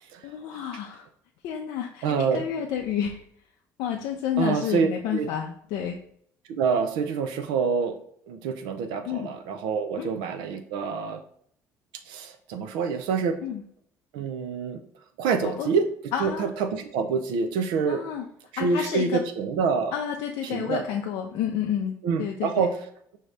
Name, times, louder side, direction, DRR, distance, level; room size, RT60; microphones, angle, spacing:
voice 1, 0.2-1.1 1.4-3.2 3.8-6.0 9.1-9.3 10.0-10.1 13.4-13.6 15.4-15.7 16.1-16.5 17.9-18.3 18.6-19.2 19.9-22.7, left 9 dB, 75° left, 2 dB, 0.4 m, -30 dB
voice 2, 2.0-2.5 4.4-5.3 6.5-7.9 8.3-11.2 12.1-13.4 14.1-14.8 15.2-18.0 18.5-19.9 20.4-20.8 22.0-22.7, right 5 dB, 85° right, 7 dB, 0.4 m, -26 dB
4.9 x 2.7 x 3.2 m, 0.65 s
supercardioid pair, 85°, 8 cm